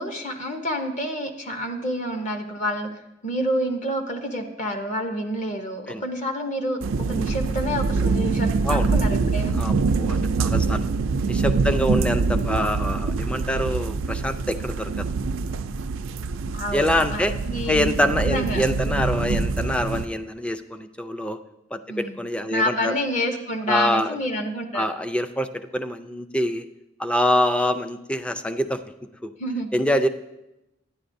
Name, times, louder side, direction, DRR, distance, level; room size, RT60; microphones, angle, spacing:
voice 1, 0.0-2.9 3.2-9.6 11.7-11.9 16.5-17.9 18.3-18.6 21.9-22.2 22.5-24.9 29.4-29.7, equal, 40° left, 5 dB, 0.7 m, -28 dB
sound 1, 6.8-20.1, right 4 dB, 90° right, 0.4 m, -24 dB
voice 2, 9.5-10.9 11.3-15.1 16.7-17.3 17.7-21.4 21.7-23.0 23.7-24.1 24.7-26.7 27.0-28.8 29.2-29.3 29.7-30.1, equal, 5° left, 10 dB, 0.3 m, -25 dB
11.0 x 9.8 x 2.6 m, 0.92 s
head